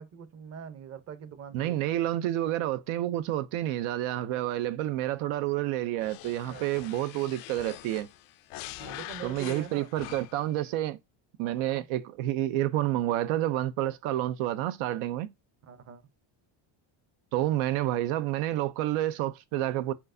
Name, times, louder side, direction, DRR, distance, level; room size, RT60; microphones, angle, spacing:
voice 1, 0.0-1.8 6.5-6.6 8.8-9.9 11.4-11.8 15.6-16.0, right 7 dB, 30° right, 0.7 m, -43 dB
voice 2, 1.5-8.1 9.2-11.0 11.4-15.3 17.3-19.9, right 14 dB, 75° right, 0.6 m, -29 dB
sound 1, 6.0-10.6, left 16 dB, 70° left, 0.6 m, -44 dB
4.6 x 4.1 x 2.6 m
cardioid pair, 140°, 50 cm